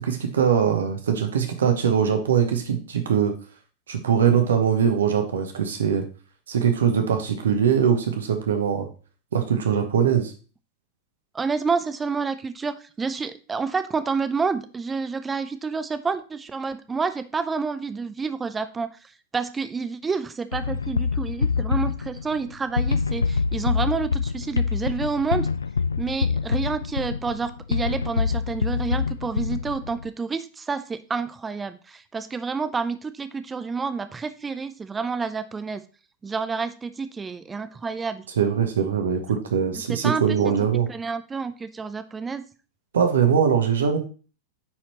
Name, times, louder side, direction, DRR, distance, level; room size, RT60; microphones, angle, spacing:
voice 1, 0.0-3.3 3.9-6.0 6.5-8.9 9.3-10.3 38.4-40.9 42.9-44.0, right 7 dB, 65° right, 5 dB, 1.1 m, -22 dB
voice 2, 11.3-18.9 19.3-25.5 26.0-35.8 36.2-38.2 39.7-40.4 40.9-42.4, right 5 dB, 15° right, 11 dB, 0.6 m, -29 dB
sound 1, 20.5-30.1, left 5 dB, 75° left, 0.3 m, -25 dB
9.9 x 4.3 x 3.0 m, 0.37 s
figure-of-eight pair, 90°, 0 cm